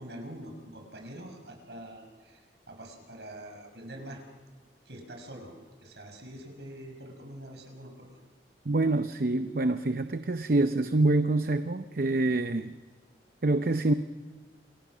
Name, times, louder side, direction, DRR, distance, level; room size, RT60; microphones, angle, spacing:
voice 1, 0.0-4.2 4.9-5.5 5.8-8.1, right 1 dB, 75° right, 3 dB, 5.6 m, -45 dB
voice 2, 8.7-12.8 13.4-13.9, right 2 dB, 55° right, 9 dB, 0.7 m, -26 dB
28.0 x 20.5 x 6.2 m, 1.4 s
head